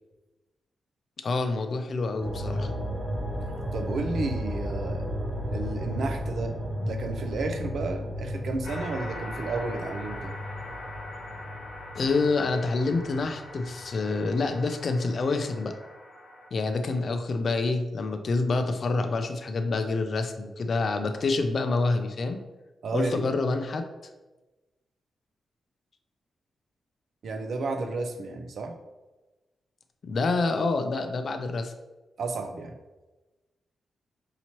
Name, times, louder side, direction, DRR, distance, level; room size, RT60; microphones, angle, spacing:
voice 1, 1.2-2.7 12.0-15.7 16.5-22.4 22.9-23.8 30.0-31.7, left 3 dB, 45° left, 7 dB, 0.4 m, -27 dB
sound 1, 2.2-13.8 14.2-14.3, equal, 20° right, 0.7 m, -34 dB
voice 2, 3.7-5.1 5.5-10.3 22.8-23.4 27.2-28.7 32.2-32.8, right 3 dB, 60° right, 6 dB, 0.4 m, -32 dB
sound 2, 8.6-16.5, left 1 dB, 70° left, 0.9 m, -42 dB
5.5 x 2.9 x 2.9 m, 1.2 s
wide cardioid pair, 170°, 0 cm